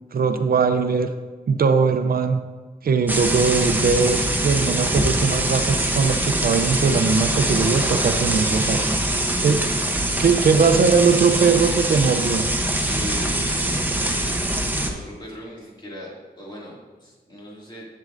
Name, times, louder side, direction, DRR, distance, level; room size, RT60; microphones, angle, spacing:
voice 1, 0.1-1.1 1.5-2.4 2.8-8.8 9.4-9.6 10.2-12.5, right 5 dB, 65° right, 8 dB, 0.5 m, -20 dB
sound 1, 3.1-14.9, right 1 dB, 10° right, 0.7 m, -23 dB
voice 2, 10.8-11.2 12.9-14.3 14.7-17.9, equal, 30° left, -4 dB, 2.2 m, -39 dB
11.0 x 7.6 x 2.5 m, 1.4 s
wide cardioid pair, 140°, 16 cm